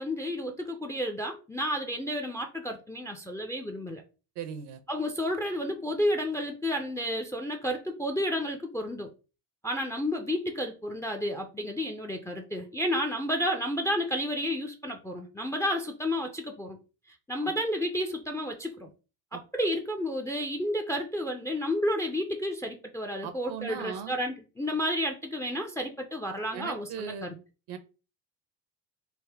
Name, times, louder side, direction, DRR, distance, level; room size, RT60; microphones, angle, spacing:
voice 1, 0.0-4.0 4.9-9.1 9.6-16.8 17.3-18.9 19.3-27.4, equal, 5° left, 3 dB, 0.5 m, -31 dB
voice 2, 4.4-4.8 17.4-17.5 19.3-19.4 23.2-24.1 26.5-27.3 27.7-27.8, right 8 dB, 55° right, 10 dB, 0.8 m, -38 dB
3.5 x 2.1 x 3.4 m, 0.33 s
supercardioid pair, 75°, 50 cm